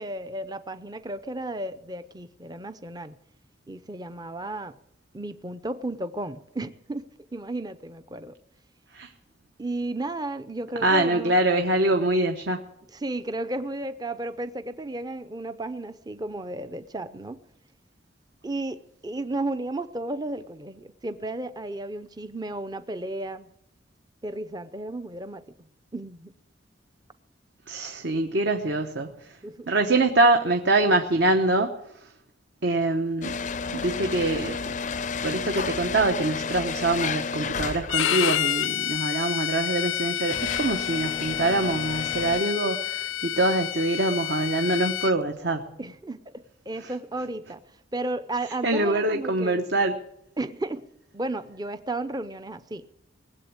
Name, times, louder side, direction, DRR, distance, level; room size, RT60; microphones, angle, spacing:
voice 1, 0.0-3.2 3.7-4.7 5.1-7.0 7.3-8.4 9.6-11.3 12.9-17.4 18.4-23.5 24.2-25.4 25.9-26.3 29.4-29.7 45.8-47.6 47.9-49.6 50.4-50.8 51.1-52.8, right 2 dB, 20° right, 11 dB, 0.6 m, -33 dB
voice 2, 10.8-12.6 27.7-29.1 29.7-31.7 32.6-33.4 33.7-34.6 35.2-45.7 46.8-46.9 48.6-50.0, right 2 dB, 60° right, 5 dB, 1.0 m, -24 dB
sound 1, 33.2-38.2 39.1-39.3 39.9-42.4, left 5 dB, 40° left, 0.5 m, -32 dB
Bowed string instrument, 37.9-45.1, left 12 dB, 85° left, 0.6 m, -29 dB
19.5 x 8.0 x 8.6 m, 0.79 s
head